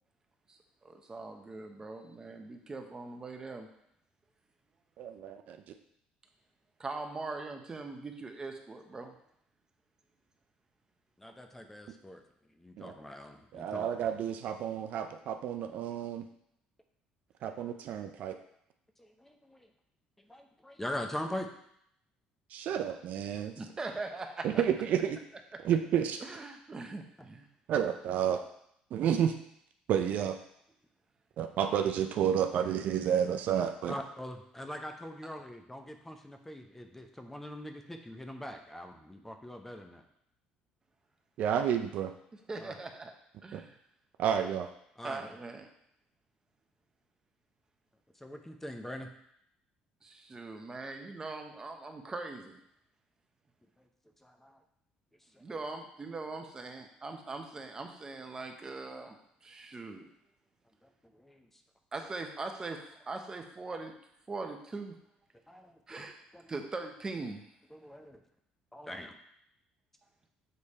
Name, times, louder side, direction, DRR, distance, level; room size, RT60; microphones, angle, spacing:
voice 1, 0.5-3.7 6.8-9.2 23.6-24.6 26.2-27.5 42.5-43.1 43.4-43.8 45.0-45.7 50.0-52.6 55.4-60.1 61.9-64.0 64.3-65.0 65.5-65.6 65.9-66.1 66.5-67.5, right 3 dB, 25° right, 5 dB, 0.8 m, -41 dB
voice 2, 5.0-5.6 12.8-12.9 13.5-16.2 17.4-18.4 22.5-23.5 24.4-25.2 25.6-26.2 27.7-28.4 28.9-29.3 29.9-30.4 31.4-33.9 41.4-42.1 43.5-43.6 44.2-44.7, right 9 dB, 65° right, 6 dB, 0.5 m, -30 dB
voice 3, 11.2-12.2 12.6-13.9 19.0-19.7 20.3-21.5 33.9-40.0 42.6-42.8 45.0-45.3 48.2-49.1 53.8-53.9 54.2-54.6 55.3-55.4 61.1-61.5 65.5-66.0 66.3-66.5 67.7-68.2 68.7-69.1, left 1 dB, 10° left, 5 dB, 0.7 m, -42 dB
6.7 x 3.3 x 4.2 m, 0.73 s
cardioid pair, 100°, 3 cm